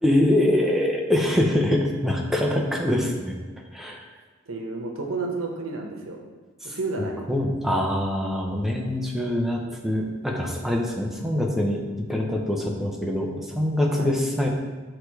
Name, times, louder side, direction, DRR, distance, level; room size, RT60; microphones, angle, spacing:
voice 1, 0.0-3.4 3.7-4.0 6.6-6.8 7.3-11.8 12.1-14.5, left 1 dB, ahead, -1 dB, 0.7 m, -24 dB
voice 2, 4.5-6.2 6.6-7.2 14.0-14.1, right 3 dB, 85° right, 1 dB, 0.9 m, -31 dB
6.4 x 3.3 x 4.7 m, 1.3 s
head